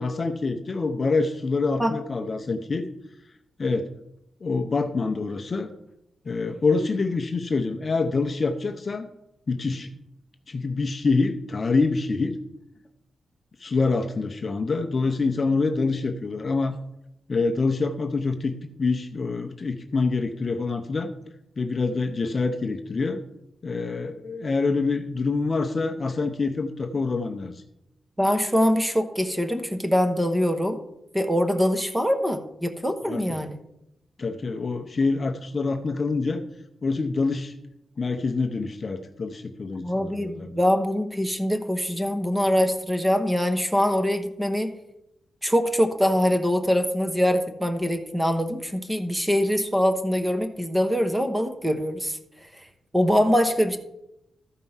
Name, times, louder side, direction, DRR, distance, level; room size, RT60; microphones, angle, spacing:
voice 1, 0.0-2.9 3.6-3.9 4.4-5.7 6.2-9.1 9.5-9.9 10.5-12.4 13.6-16.7 17.3-21.1 21.6-23.2 23.6-27.6 33.1-33.4 34.2-36.4 36.8-37.5 38.0-40.5, left 3 dB, 30° left, 5 dB, 0.7 m, -26 dB
voice 2, 28.2-30.8 31.1-33.6 39.8-44.7 45.4-52.2 52.9-53.8, equal, 5° right, 6 dB, 0.9 m, -23 dB
13.5 x 4.6 x 5.6 m, 0.84 s
wide cardioid pair, 170°, 0 cm